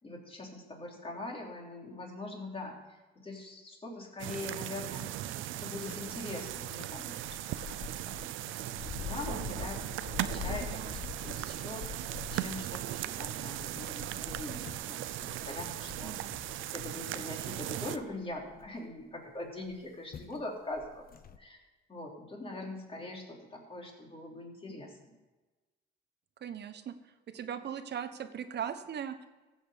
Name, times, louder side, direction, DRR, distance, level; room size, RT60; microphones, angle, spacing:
voice 1, 0.0-2.8 3.2-5.1 5.6-7.8 8.1-9.9 10.2-11.0 11.2-11.8 12.3-16.2 16.6-21.1 21.4-21.6 21.9-25.1, left 2 dB, 30° left, -1 dB, 3.5 m, -42 dB
sound 1, 4.2-18.0, right 14 dB, 90° right, 0.5 m, -38 dB
sound 2, 5.9-19.0 19.7-19.9 20.1-20.4 20.7-21.4, left 9 dB, 50° left, 0.8 m, -45 dB
voice 2, 10.6-11.0 16.0-16.3 26.4-26.9 27.3-29.3, right 8 dB, 60° right, 10 dB, 1.1 m, -39 dB
15.5 x 7.8 x 5.2 m, 1.2 s
cardioid pair, 90°, 20 cm